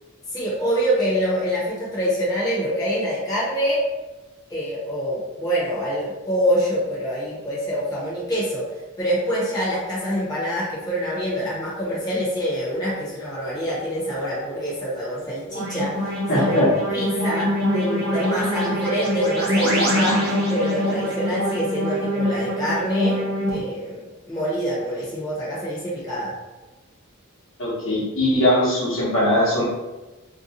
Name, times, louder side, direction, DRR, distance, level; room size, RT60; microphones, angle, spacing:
voice 1, 0.3-3.8 4.5-8.6 9.0-15.9 16.3-16.6 16.9-20.2 20.5-23.2 23.5-24.0 24.3-26.3, equal, 15° left, -9 dB, 0.9 m, -25 dB
sound 1, 15.5-23.6, equal, 45° right, 1.0 m, -24 dB
voice 2, 16.3-16.7 27.6-29.6, left 1 dB, 60° left, -6 dB, 1.1 m, -20 dB
2.6 x 2.2 x 4.1 m, 1.1 s
head